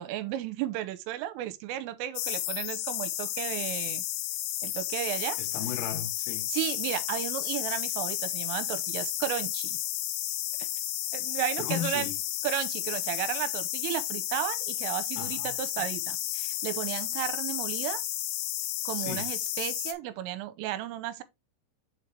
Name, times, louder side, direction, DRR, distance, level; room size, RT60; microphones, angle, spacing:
voice 1, 0.0-4.0 4.6-5.4 6.5-9.8 10.6-10.7 11.1-12.1 12.4-18.0 18.9-21.2, right 13 dB, 90° right, 3.3 m, -34 dB
sound 1, 2.2-19.9, left 14 dB, 85° left, 3.5 m, -32 dB
voice 2, 5.4-6.5 11.6-12.1 15.2-15.5 18.9-19.2, left 10 dB, 65° left, 3.3 m, -36 dB
7.2 x 5.2 x 3.3 m
omnidirectional pair, 5.9 m